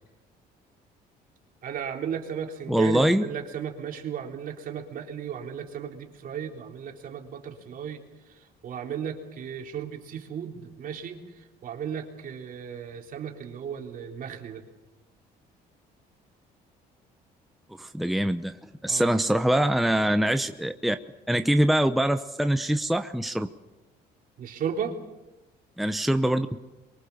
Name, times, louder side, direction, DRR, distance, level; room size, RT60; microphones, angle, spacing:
voice 1, 1.6-8.0 8.3-14.6 18.9-19.1 24.4-25.0, right 8 dB, 55° right, 2 dB, 3.6 m, -35 dB
voice 2, 2.7-3.3 17.8-18.5 18.8-21.0 21.3-23.5 25.8-26.6, right 1 dB, ahead, 8 dB, 0.8 m, -24 dB
25.5 x 23.5 x 7.1 m, 1.1 s
cardioid pair, 110°, 17 cm